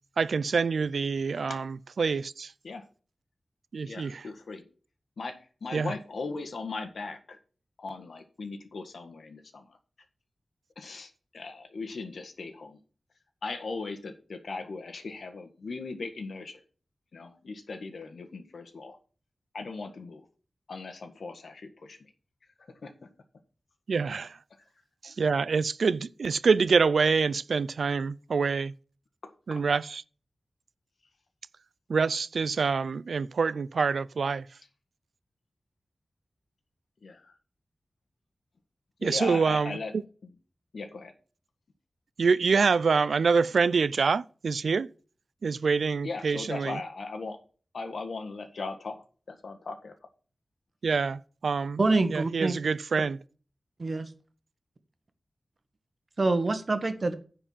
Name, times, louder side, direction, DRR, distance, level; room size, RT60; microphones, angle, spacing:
voice 1, 0.2-2.5 3.7-4.3 5.7-5.9 23.9-24.4 25.0-28.7 29.5-30.0 31.9-34.5 39.0-39.8 42.2-44.9 45.4-46.8 50.8-51.8 52.1-53.2, right 5 dB, 90° right, 0.4 m, -26 dB
voice 2, 3.8-4.6 5.2-7.4 7.8-9.8 10.8-12.8 13.4-16.6 17.1-19.0 19.5-20.2 20.7-22.0 22.7-22.9 29.2-29.6 37.0-37.3 39.0-39.9 40.2-40.3 40.7-41.1 46.0-47.4 47.7-49.9, left 3 dB, 80° left, 1.6 m, -38 dB
voice 3, 51.8-52.5 53.8-54.1 56.2-57.1, right 3 dB, 45° right, 1.4 m, -25 dB
9.9 x 4.7 x 7.3 m
wide cardioid pair, 110°, 0 cm